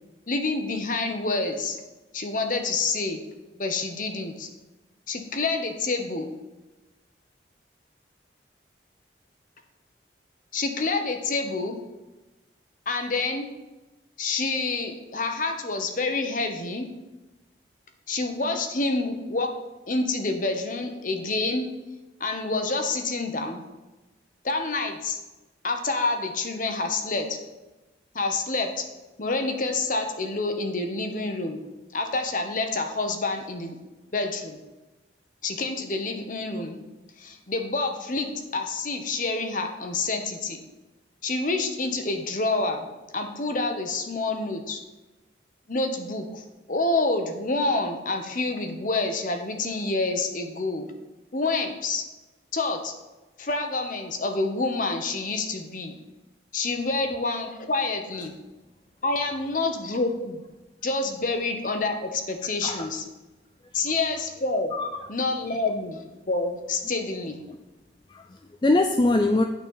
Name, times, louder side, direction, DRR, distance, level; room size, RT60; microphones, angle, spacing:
voice 1, 0.3-1.8 2.1-3.2 3.6-4.5 5.1-6.3 10.5-11.8 12.9-13.5 14.2-16.9 18.1-19.5 19.9-21.7 22.2-23.6 24.4-25.2 25.6-27.4 28.1-28.8 29.2-31.6 31.9-33.8 34.1-34.6 35.4-36.8 37.2-40.6 41.2-44.8 45.7-50.9 51.3-52.0 52.5-52.9 53.4-56.0 56.5-58.4 59.0-60.4 60.8-63.0 63.7-64.7 65.1-67.4, left 3 dB, 45° left, 5 dB, 1.0 m, -28 dB
voice 2, 64.7-65.0 68.1-69.4, left 2 dB, 25° left, 4 dB, 0.4 m, -23 dB
9.2 x 4.2 x 7.2 m, 1.1 s
head